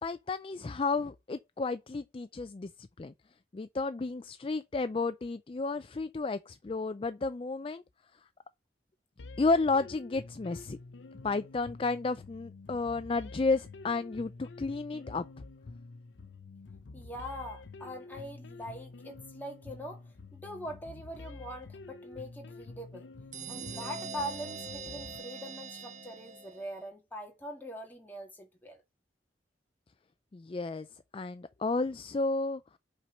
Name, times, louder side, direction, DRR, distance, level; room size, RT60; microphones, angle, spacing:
voice 1, 0.0-3.1 3.5-7.8 9.4-10.8 11.2-15.4 30.3-30.9 31.1-32.6, left 3 dB, 30° left, 0.4 m, -32 dB
sound 1, 9.2-25.2, left 3 dB, 90° left, 0.6 m, -48 dB
voice 2, 16.9-20.0 20.3-23.1 23.5-28.8, equal, 10° left, 1.9 m, -42 dB
sound 2, 23.3-26.9, right 4 dB, 40° right, 1.0 m, -42 dB
5.9 x 4.5 x 5.2 m
head